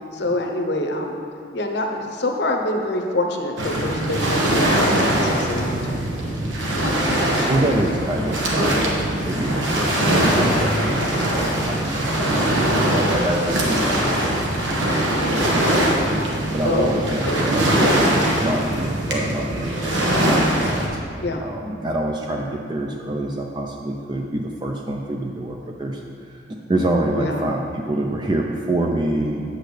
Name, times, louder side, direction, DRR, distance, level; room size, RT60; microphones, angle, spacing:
voice 1, 0.1-1.2 1.5-6.0 6.6-7.7 10.5-10.8 16.6-17.0 17.3-17.5 21.2-21.4 27.2-27.4, left 2 dB, 60° left, 3 dB, 0.8 m, -26 dB
Waves surf, 3.6-20.9, right 1 dB, 85° right, 1.2 m, -21 dB
voice 2, 7.5-26.0 26.3-29.4, right 1 dB, 25° right, 1 dB, 0.4 m, -27 dB
Car passing by, 7.8-19.1, left 2 dB, 25° left, 0.6 m, -37 dB
8.3 x 7.6 x 3.3 m, 2.5 s
head